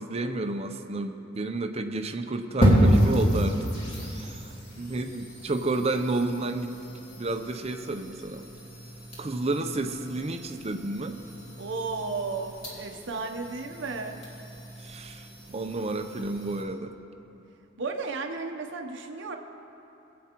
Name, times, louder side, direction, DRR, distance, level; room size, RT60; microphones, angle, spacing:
voice 1, 0.0-3.6 4.1-6.7 7.2-8.5 9.2-11.2 14.8-16.9, right 2 dB, 30° right, 6 dB, 0.6 m, -31 dB
sound 1, 2.6-16.6, equal, 35° left, 2.8 m, -30 dB
voice 2, 11.6-14.2 17.8-19.4, right 4 dB, 65° right, 3 dB, 0.8 m, -33 dB
21.5 x 8.5 x 3.0 m, 2.9 s
head